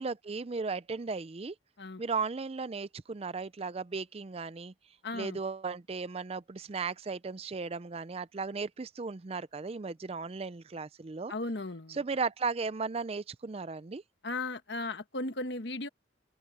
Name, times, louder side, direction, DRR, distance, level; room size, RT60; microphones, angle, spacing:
voice 1, 0.0-1.5 2.0-4.7 5.1-11.3 11.9-14.0, right 4 dB, 30° right, 0.4 m, -36 dB
voice 2, 5.0-5.4 11.3-12.0 14.2-15.9, left 2 dB, 60° left, 1.3 m, -36 dB
open air
head